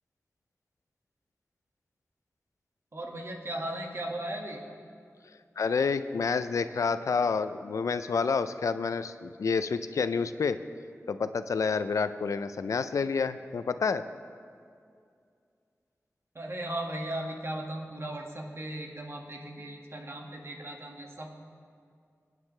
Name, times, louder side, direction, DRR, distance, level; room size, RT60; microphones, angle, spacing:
voice 1, 2.9-4.6 16.4-21.3, right 1 dB, 55° right, 0 dB, 1.8 m, -37 dB
voice 2, 5.6-10.6 11.1-14.0, left 5 dB, 90° left, 11 dB, 0.4 m, -29 dB
24.0 x 9.1 x 3.3 m, 2.3 s
wide cardioid pair, 60°, 5 cm